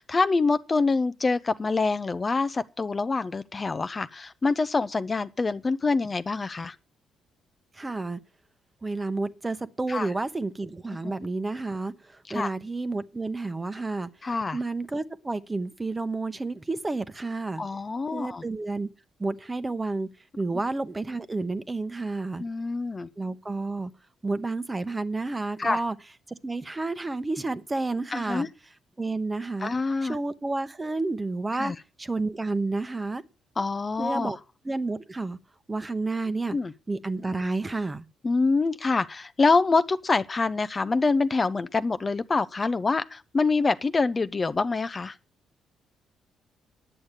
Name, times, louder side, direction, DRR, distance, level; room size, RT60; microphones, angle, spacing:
voice 1, 0.0-6.8 9.9-10.1 11.0-11.1 12.3-12.5 14.2-14.6 17.6-18.4 22.4-23.1 25.6-25.8 28.1-28.5 29.6-30.2 31.5-31.8 33.6-34.3 36.5-36.7 38.2-45.2, left 3 dB, 30° left, 0.5 m, -26 dB
voice 2, 7.7-8.2 8.8-14.1 14.5-17.6 18.1-18.9 19.2-20.1 20.4-22.4 23.2-23.9 24.2-26.0 26.3-28.5 29.0-29.7 30.0-31.7 32.0-33.2 34.0-34.4 34.6-35.4 35.7-36.6 36.9-38.0, right 3 dB, 20° right, 0.9 m, -30 dB
9.9 x 6.3 x 8.9 m
cardioid pair, 90°, 0 cm